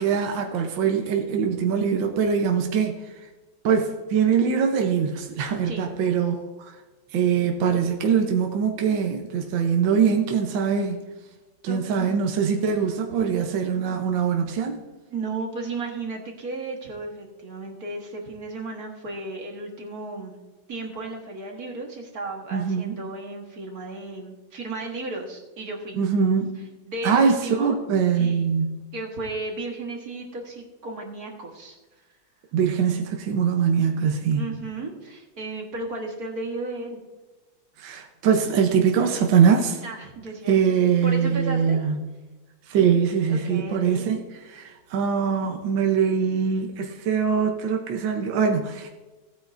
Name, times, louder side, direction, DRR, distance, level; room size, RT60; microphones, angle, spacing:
voice 1, 0.0-3.2 3.6-6.8 7.1-11.0 11.6-14.8 22.5-23.0 25.9-26.6 27.0-28.8 32.5-34.4 37.8-39.8 40.5-42.0 42.7-49.0, right 6 dB, 70° right, 3 dB, 1.6 m, -23 dB
voice 2, 11.7-12.1 15.1-20.4 20.7-26.0 26.9-27.9 28.2-28.4 28.9-31.8 34.3-37.0 39.8-40.6 41.0-41.8 43.3-44.1, right 3 dB, 50° right, 1 dB, 1.8 m, -34 dB
15.5 x 9.2 x 2.6 m, 1.2 s
omnidirectional pair, 2.2 m